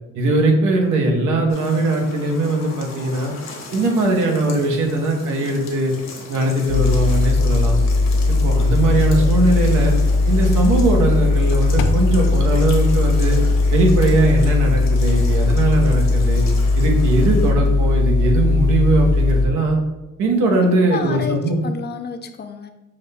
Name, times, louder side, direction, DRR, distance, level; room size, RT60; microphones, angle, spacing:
voice 1, 0.1-3.3 3.7-5.9 6.3-7.8 8.3-9.9 10.3-13.4 13.7-16.4 16.8-19.8 20.2-21.6, right 2 dB, 80° right, 1 dB, 1.0 m, -19 dB
sound 1, 1.5-17.5, left 3 dB, 65° left, 1.1 m, -37 dB
sound 2, 6.7-19.5, left 3 dB, 80° left, 0.5 m, -18 dB
voice 2, 20.6-22.7, left 5 dB, 35° left, 7 dB, 0.4 m, -30 dB
6.1 x 2.2 x 3.5 m, 0.99 s
cardioid pair, 90°, 30 cm